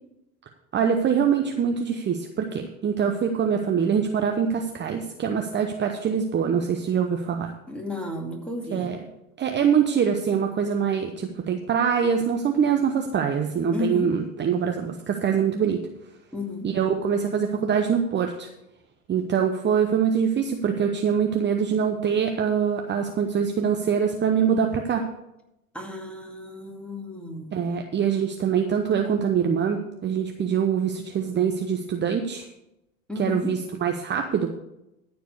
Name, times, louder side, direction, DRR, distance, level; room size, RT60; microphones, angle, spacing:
voice 1, 0.7-7.5 8.7-9.0 9.4-15.8 16.6-18.5 19.1-25.1 27.5-32.5 33.2-34.5, right 7 dB, 25° right, 4 dB, 0.9 m, -24 dB
voice 2, 7.7-8.9 13.7-14.1 16.3-16.7 25.7-27.6 33.1-33.5, left 2 dB, 5° left, 1 dB, 2.5 m, -33 dB
13.5 x 4.7 x 6.7 m, 0.88 s
hypercardioid pair, 90°, 42 cm